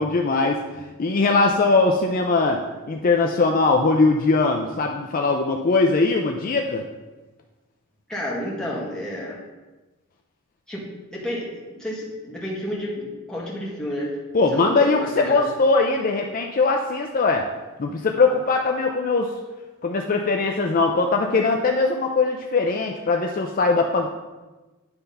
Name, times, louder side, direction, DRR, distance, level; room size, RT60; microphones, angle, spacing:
voice 1, 0.0-2.6 2.9-6.9 14.3-17.5 17.8-19.3 19.8-24.1, left 3 dB, 40° left, 2 dB, 0.4 m, -21 dB
voice 2, 8.1-9.4 10.7-10.8 11.1-14.1 14.5-15.5, equal, 5° left, -6 dB, 1.7 m, -31 dB
9.7 x 3.4 x 5.5 m, 1.2 s
head